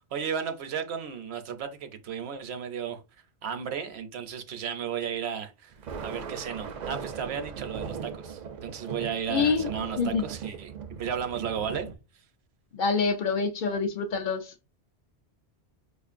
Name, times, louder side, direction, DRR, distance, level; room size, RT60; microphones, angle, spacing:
voice 1, 0.1-3.0 3.4-5.7 6.0-10.7 11.0-11.9, right 7 dB, 75° right, 0.9 m, -34 dB
Thunder, 5.7-12.0, right 6 dB, 55° right, 0.5 m, -39 dB
voice 2, 9.3-9.7 10.0-10.2 12.7-14.5, left 5 dB, 60° left, 0.6 m, -26 dB
5.0 x 2.4 x 2.4 m
omnidirectional pair, 1.1 m